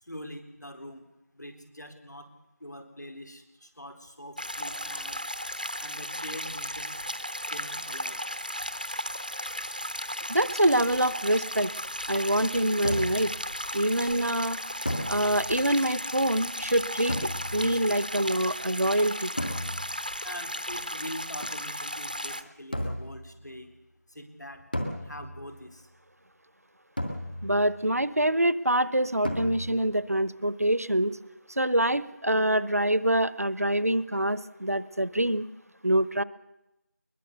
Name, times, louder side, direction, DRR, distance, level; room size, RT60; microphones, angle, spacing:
voice 1, 0.0-1.1 1.3-2.3 2.6-5.2 5.8-6.9 7.5-8.2 20.2-23.7 24.1-24.6 25.0-25.9, equal, 80° left, 6 dB, 4.2 m, -43 dB
sound 1, 4.4-22.4, equal, 30° right, 0.8 m, -35 dB
voice 2, 10.3-11.7 12.1-13.3 13.7-14.6 15.1-19.3 27.4-31.1 31.6-35.4 35.8-36.2, right 1 dB, 60° right, 17 dB, 0.9 m, -25 dB
sound 2, 12.8-13.4 14.9-15.7 17.1-17.9 19.4-20.1 22.7-23.3 24.7-25.6 27.0-27.8 29.2-29.9, equal, 30° left, 2.0 m, -34 dB
21.5 x 21.0 x 6.8 m, 0.90 s
figure-of-eight pair, 180°, 9 cm